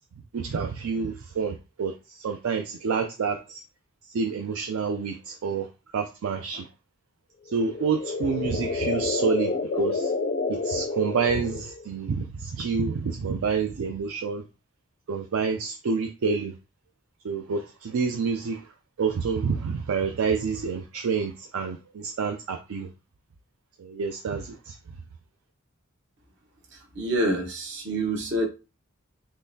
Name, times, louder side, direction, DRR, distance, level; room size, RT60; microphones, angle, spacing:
voice 1, 0.3-3.6 4.1-5.7 5.9-6.7 7.5-10.1 10.5-14.4 15.1-16.6 17.2-18.6 19.0-22.9 23.8-24.8, right 5 dB, 70° right, 5 dB, 0.4 m, -28 dB
sound 1, 7.5-11.9, left 4 dB, 50° left, 0.4 m, -29 dB
voice 2, 26.9-28.5, right 1 dB, 55° right, 2 dB, 1.0 m, -26 dB
3.8 x 3.0 x 2.7 m, 0.29 s
head